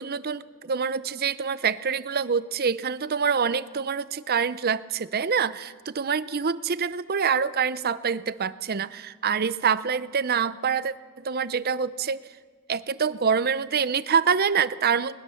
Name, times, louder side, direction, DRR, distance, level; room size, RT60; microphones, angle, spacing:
voice 1, 0.0-12.2 12.7-15.2, right 6 dB, 45° right, 15 dB, 0.6 m, -26 dB
21.5 x 19.5 x 7.1 m, 1.5 s
head